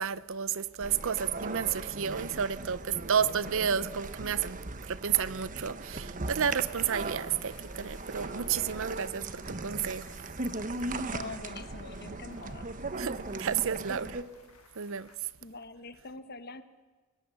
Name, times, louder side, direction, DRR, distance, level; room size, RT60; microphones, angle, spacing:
voice 1, 0.0-4.6 4.9-10.0 13.0-14.2 14.8-15.1, right 7 dB, 60° right, 0.7 m, -31 dB
sound 1, 0.8-14.2, right 2 dB, 35° right, 1.1 m, -38 dB
sound 2, 1.5-3.8 5.0-7.3 8.3-10.6 11.2-13.6, right 2 dB, 85° right, 1.3 m, -54 dB
sound 3, 6.4-15.2, left 5 dB, 80° left, 1.8 m, -58 dB
voice 2, 10.9-12.7 15.4-16.6, left 3 dB, 45° left, 1.2 m, -44 dB
30.0 x 18.5 x 8.5 m
head